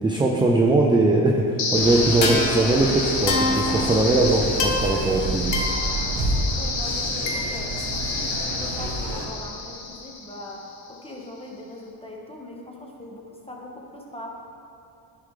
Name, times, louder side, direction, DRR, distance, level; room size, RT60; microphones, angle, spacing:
voice 1, 0.0-5.5, right 2 dB, 10° right, 0 dB, 0.4 m, -20 dB
sound 1, 1.6-10.6, left 3 dB, 65° left, 1.2 m, -27 dB
sound 2, 1.7-9.2, right 2 dB, 40° right, 1.8 m, -29 dB
voice 2, 3.6-4.2 5.9-14.3, left 1 dB, 10° left, -1 dB, 1.1 m, -41 dB
9.9 x 4.8 x 3.7 m, 2.6 s
cardioid pair, 105°, 47 cm